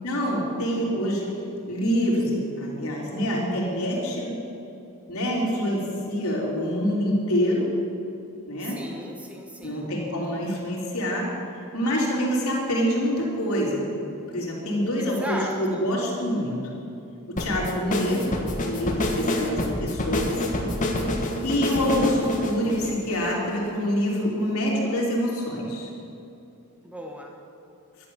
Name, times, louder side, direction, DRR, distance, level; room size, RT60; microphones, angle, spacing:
voice 1, 0.0-1.3 1.7-4.4 5.1-7.7 8.5-8.8 9.6-11.3 11.7-13.9 14.3-16.6 17.3-18.2 18.6-20.3 21.4-25.9, equal, 75° left, -4 dB, 3.7 m, -26 dB
voice 2, 8.6-10.0 15.0-15.8 18.1-18.3 19.3-19.7 21.8-22.0 26.8-27.4, right 1 dB, 5° right, 1 dB, 1.2 m, -37 dB
sound 1, 17.4-23.7, left 1 dB, 35° left, 1.6 m, -27 dB
12.0 x 11.0 x 7.1 m, 2.8 s
head